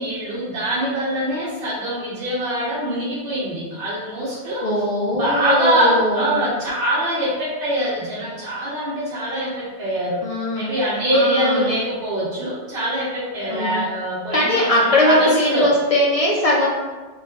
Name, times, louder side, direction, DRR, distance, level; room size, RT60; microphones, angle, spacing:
voice 1, 0.0-4.6 5.1-10.2 10.5-15.7, right 1 dB, 60° right, -9 dB, 1.1 m, -23 dB
voice 2, 4.6-6.4 10.2-10.7 11.1-11.8 13.5-13.8 14.3-16.7, left 1 dB, 60° left, -3 dB, 0.3 m, -20 dB
3.1 x 2.6 x 3.5 m, 1.3 s
omnidirectional pair, 1.2 m